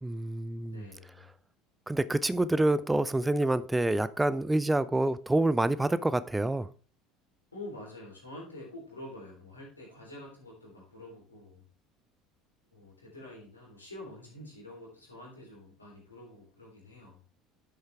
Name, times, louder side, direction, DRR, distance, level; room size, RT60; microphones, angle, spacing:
voice 1, 0.0-0.8 1.9-6.7, right 2 dB, 10° right, 0.5 m, -27 dB
voice 2, 0.7-1.3 7.5-11.6 12.7-17.2, left 1 dB, 85° left, 3.7 m, -47 dB
11.0 x 6.5 x 3.5 m
figure-of-eight pair, 65°, 0 cm